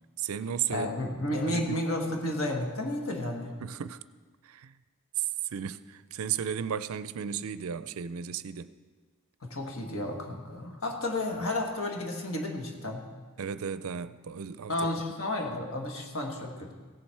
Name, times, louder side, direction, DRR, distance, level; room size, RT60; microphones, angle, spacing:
voice 1, 0.2-0.9 1.5-1.9 3.6-4.0 4.4-4.8 5.2-8.7 11.4-11.5 13.4-14.7, right 8 dB, 70° right, 14 dB, 0.4 m, -34 dB
voice 2, 0.7-3.5 9.4-13.1 14.7-16.7, left 1 dB, 65° left, 2 dB, 1.6 m, -32 dB
16.5 x 7.2 x 4.6 m, 1.4 s
head